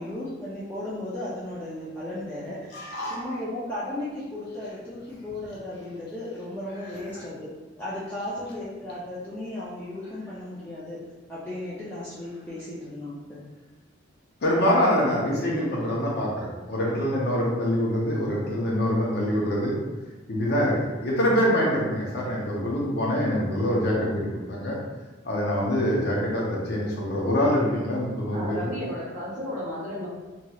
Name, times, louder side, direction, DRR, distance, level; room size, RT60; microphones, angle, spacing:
voice 1, 0.0-7.5 7.8-11.0 11.3-13.4, left 1 dB, 10° left, -10 dB, 0.5 m, -35 dB
voice 2, 2.7-3.2 14.4-19.7 20.3-24.8 25.2-28.7, equal, 55° left, -3 dB, 0.7 m, -25 dB
voice 3, 28.3-30.1, equal, 40° right, -6 dB, 0.9 m, -33 dB
3.0 x 2.8 x 2.3 m, 1.2 s
head